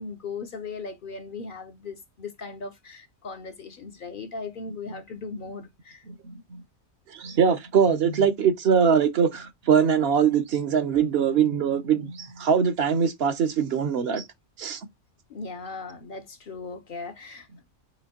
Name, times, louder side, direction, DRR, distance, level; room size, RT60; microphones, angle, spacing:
voice 1, 0.0-6.0 7.8-8.3 15.3-17.5, left 4 dB, 55° left, 0.7 m, -38 dB
voice 2, 6.2-6.6 7.1-14.2 14.6-14.8, right 7 dB, 65° right, 0.9 m, -22 dB
5.0 x 3.0 x 2.8 m
omnidirectional pair, 1.2 m